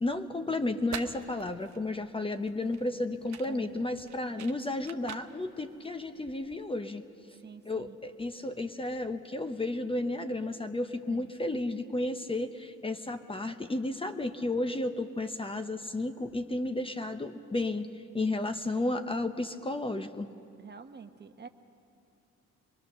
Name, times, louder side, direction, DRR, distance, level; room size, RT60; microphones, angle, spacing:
voice 1, 0.0-7.0 7.6-17.9 18.1-20.3, left 2 dB, 20° left, 8 dB, 0.8 m, -33 dB
sound 1, 0.6-6.7, right 10 dB, 65° right, 1.0 m, -47 dB
voice 2, 3.4-3.8 7.4-8.0 11.1-11.4 20.6-21.5, right 6 dB, 35° right, 8 dB, 1.0 m, -48 dB
24.5 x 20.5 x 6.7 m, 2.6 s
cardioid pair, 90°, 30 cm